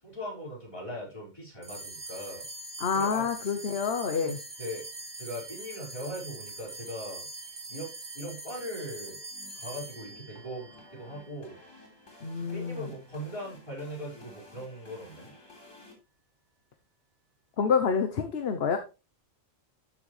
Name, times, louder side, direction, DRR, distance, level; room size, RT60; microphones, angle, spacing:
voice 1, 0.0-2.5 2.9-3.5 4.2-4.9 5.2-9.2 9.5-11.6 12.4-15.4, equal, 25° left, -6 dB, 5.5 m, -40 dB
sound 1, 1.6-12.3, right 2 dB, 50° right, 1.9 m, -43 dB
voice 2, 2.8-4.4 12.2-12.9 17.6-18.8, left 6 dB, 55° left, 7 dB, 1.1 m, -28 dB
sound 2, 9.1-15.9, left 2 dB, 85° left, 3.9 m, -54 dB
13.0 x 6.2 x 3.3 m, 0.28 s
omnidirectional pair, 1.3 m